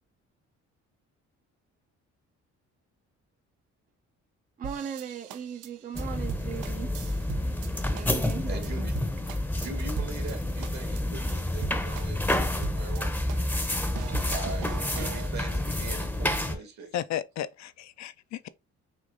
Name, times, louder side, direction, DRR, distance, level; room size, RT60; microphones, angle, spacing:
voice 1, 4.6-6.9 7.9-8.8, right 7 dB, 30° right, 0.5 m, -38 dB
sound 1, 4.6-7.7 8.0-8.3 8.6-8.7 9.0-10.3 10.6-11.0 11.3-11.4 11.6-13.0 13.3-15.3, right 8 dB, 85° right, 0.6 m, -40 dB
sound 2, 5.9-16.6, left 1 dB, 5° left, 0.7 m, -29 dB
voice 2, 8.5-13.1 14.3-17.0, right 4 dB, 65° right, 1.9 m, -42 dB
voice 3, 16.9-18.5, left 11 dB, 65° left, 0.4 m, -34 dB
6.3 x 2.7 x 2.6 m
cardioid pair, 90°, 30 cm